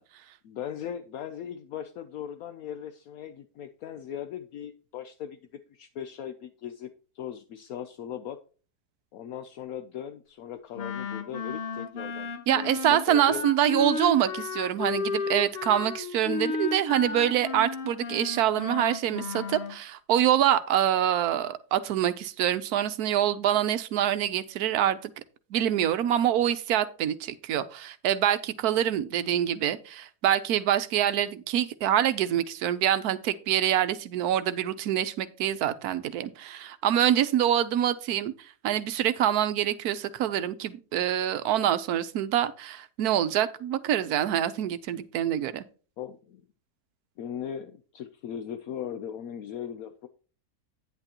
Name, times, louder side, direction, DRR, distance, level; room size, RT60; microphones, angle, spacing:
voice 1, 0.4-5.4 5.7-8.4 9.1-13.4 18.7-18.8 46.0-46.4 47.2-50.1, left 9 dB, 70° left, 1.0 m, -39 dB
Wind instrument woodwind instrument, 10.7-19.8, left 4 dB, 50° left, 0.9 m, -33 dB
voice 2, 12.5-25.1 25.5-38.3 38.6-45.6, right 11 dB, 75° right, 1.2 m, -25 dB
9.6 x 8.9 x 2.9 m
omnidirectional pair, 1.7 m